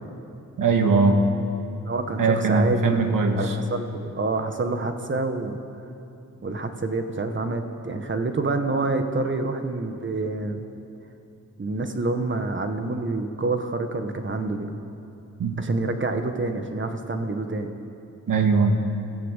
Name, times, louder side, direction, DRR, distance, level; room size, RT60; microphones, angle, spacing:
voice 1, 0.6-1.2 2.2-3.6 15.4-15.5 18.3-18.7, right 4 dB, 90° right, 4 dB, 2.1 m, -20 dB
voice 2, 1.9-5.6 6.4-10.6 11.6-14.7 15.6-17.7, right 3 dB, 35° right, 6 dB, 1.6 m, -27 dB
23.0 x 15.5 x 8.3 m, 2.8 s
wide cardioid pair, 145°, 32 cm